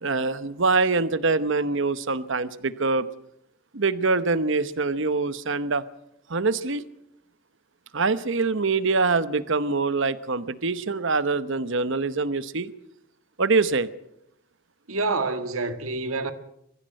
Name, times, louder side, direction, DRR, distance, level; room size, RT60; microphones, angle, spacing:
voice 1, 0.0-3.1 3.7-5.8 6.3-6.8 7.9-12.7 13.4-13.9, right 3 dB, 60° right, 1.0 m, -24 dB
voice 2, 14.9-16.3, right 3 dB, 85° right, 1.8 m, -27 dB
23.0 x 15.0 x 7.8 m
head